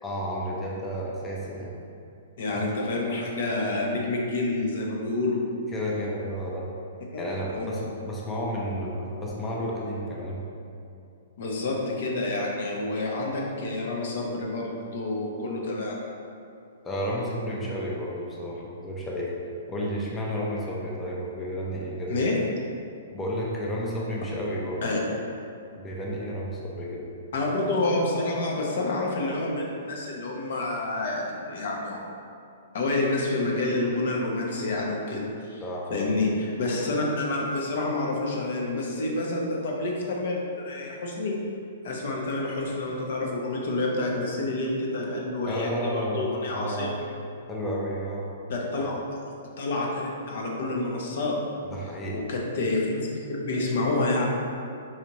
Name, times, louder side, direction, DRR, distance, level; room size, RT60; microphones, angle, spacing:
voice 1, 0.0-1.7 5.7-6.7 7.2-10.4 16.8-19.3 19.7-22.1 23.1-25.1 25.7-27.1 35.6-36.1 45.4-46.3 46.5-46.9 47.5-48.3 48.8-48.9 51.6-52.2, equal, 15° left, -4 dB, 0.4 m, -32 dB
voice 2, 2.4-5.4 7.1-7.7 11.4-16.0 22.1-22.3 24.8-25.0 27.3-32.0 32.7-35.6 35.9-41.3 41.8-47.0 48.5-49.0 49.6-51.4 52.1-54.2, left 2 dB, 65° left, -1 dB, 0.7 m, -28 dB
4.2 x 2.4 x 2.9 m, 2.5 s
hypercardioid pair, 145°, 0 cm